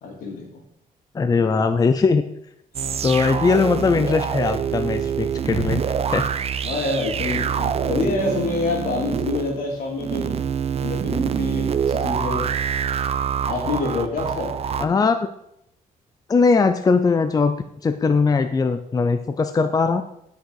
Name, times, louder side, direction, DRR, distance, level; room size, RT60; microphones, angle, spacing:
voice 1, 0.0-0.4 2.8-2.9 6.6-10.3 10.8-12.5 13.5-14.6, left 3 dB, 75° left, 0 dB, 3.3 m, -26 dB
voice 2, 1.1-2.2 3.0-5.8 6.1-6.3 14.8-15.2 16.3-17.6 17.8-20.0, left 4 dB, 25° left, 9 dB, 0.6 m, -20 dB
sound 1, 2.7-14.8, right 7 dB, 45° right, 0.6 m, -25 dB
10.5 x 6.6 x 4.8 m, 0.76 s
cardioid pair, 100°, 15 cm